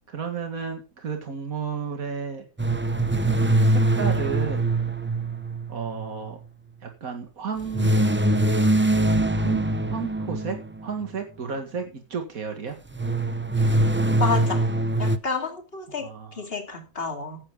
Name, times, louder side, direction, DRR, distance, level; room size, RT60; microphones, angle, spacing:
voice 1, 0.1-2.5 3.6-4.7 5.7-6.4 6.8-7.9 9.3-12.8 16.0-16.4, right 5 dB, 80° right, 2.3 m, -32 dB
sound 1, 2.6-6.1 7.7-10.8 12.9-15.2, right 1 dB, 15° right, 0.3 m, -23 dB
voice 2, 14.2-14.7 15.0-17.4, left 4 dB, 45° left, 2.7 m, -30 dB
14.5 x 10.0 x 3.8 m
omnidirectional pair, 1.5 m